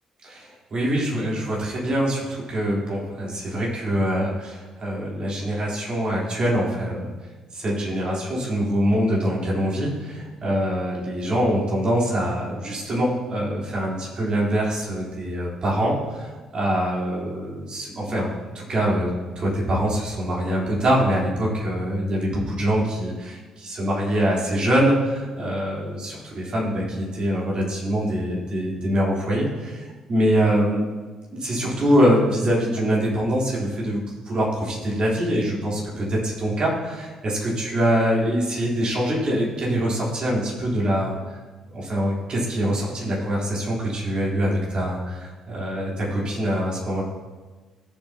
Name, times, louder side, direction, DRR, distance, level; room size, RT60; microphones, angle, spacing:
voice 1, 0.2-7.1 7.5-19.1 19.4-30.8 31.3-41.4 41.7-47.0, equal, 40° right, -4 dB, 3.5 m, -24 dB
16.0 x 7.3 x 2.9 m, 1.3 s
figure-of-eight pair, 45°, 2 cm